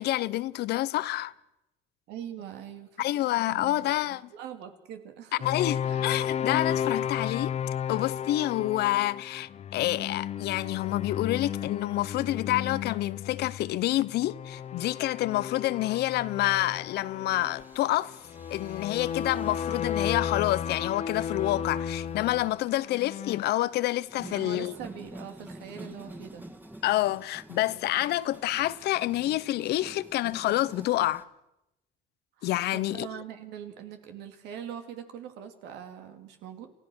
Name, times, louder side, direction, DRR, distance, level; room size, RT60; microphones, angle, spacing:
voice 1, 0.0-1.3 3.0-4.3 5.4-7.5 7.9-18.1 18.5-24.7 26.8-31.2 32.4-33.1, left 15 dB, 75° left, 0.7 m, -28 dB
voice 2, 2.1-3.0 3.5-5.4 5.8-6.2 24.2-26.4 27.8-27.9 32.4-36.7, right 9 dB, 85° right, 2.6 m, -42 dB
sound 1, 5.4-23.4, left 8 dB, 40° left, 0.8 m, -34 dB
sound 2, 14.4-31.2, right 1 dB, 10° right, 2.0 m, -50 dB
28.0 x 16.0 x 6.3 m
cardioid pair, 110°, 17 cm